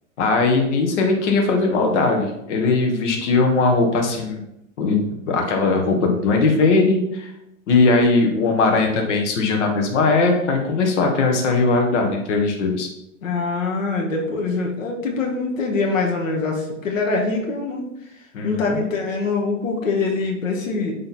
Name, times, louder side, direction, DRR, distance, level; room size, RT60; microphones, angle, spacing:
voice 1, 0.2-4.4 4.8-5.0 5.3-7.3 7.7-12.9 18.3-18.6, left 3 dB, 60° left, 2 dB, 1.7 m, -19 dB
voice 2, 13.2-17.8 18.4-20.9, left 3 dB, 85° left, 0 dB, 1.7 m, -24 dB
8.4 x 3.8 x 4.3 m, 0.83 s
hypercardioid pair, 130°, 39 cm